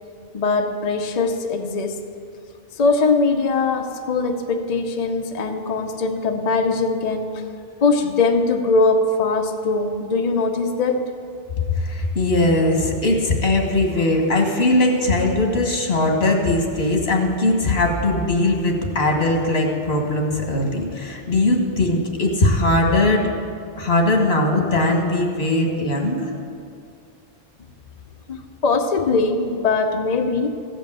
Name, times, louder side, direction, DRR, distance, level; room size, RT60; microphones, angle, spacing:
voice 1, 0.3-2.0 2.8-7.4 7.8-11.1 28.3-30.5, left 3 dB, 45° left, 4 dB, 0.7 m, -21 dB
voice 2, 11.8-23.3 23.8-26.3, left 2 dB, 75° left, 1 dB, 1.8 m, -20 dB
15.0 x 5.3 x 7.6 m, 2.3 s
omnidirectional pair, 1.0 m